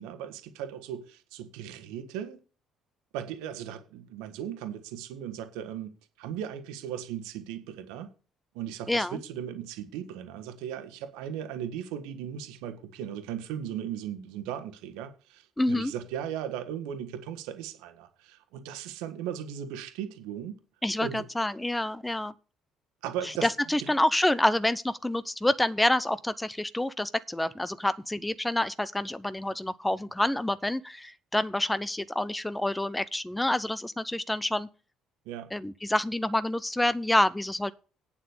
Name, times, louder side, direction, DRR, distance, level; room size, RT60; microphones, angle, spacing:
voice 1, 0.0-2.4 3.1-8.1 8.5-20.6 21.0-21.3 23.0-23.5 23.8-23.9 35.2-35.5, right 9 dB, 70° right, 1.4 m, -37 dB
voice 2, 8.9-9.2 15.6-15.9 20.8-22.3 23.4-34.7 35.5-37.7, left 1 dB, 10° left, 0.8 m, -27 dB
8.8 x 7.3 x 6.8 m
hypercardioid pair, 50°, 0 cm